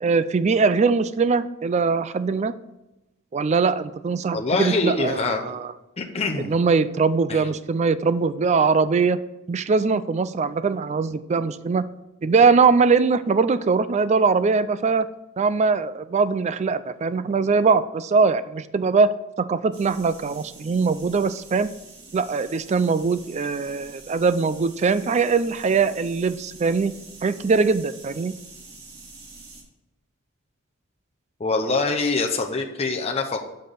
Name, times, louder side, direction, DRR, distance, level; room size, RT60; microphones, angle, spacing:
voice 1, 0.0-2.5 3.3-5.7 6.5-9.2 9.5-11.8 12.2-15.1 15.4-21.7 22.1-26.9 27.2-28.3, right 4 dB, 30° right, 14 dB, 0.3 m, -21 dB
voice 2, 4.3-5.5 6.0-6.5 7.3-7.4 31.4-33.5, left 3 dB, 30° left, 3 dB, 0.7 m, -24 dB
sound 1, 19.7-29.6, right 3 dB, 50° right, 1.9 m, -46 dB
5.9 x 5.4 x 6.6 m, 0.95 s
head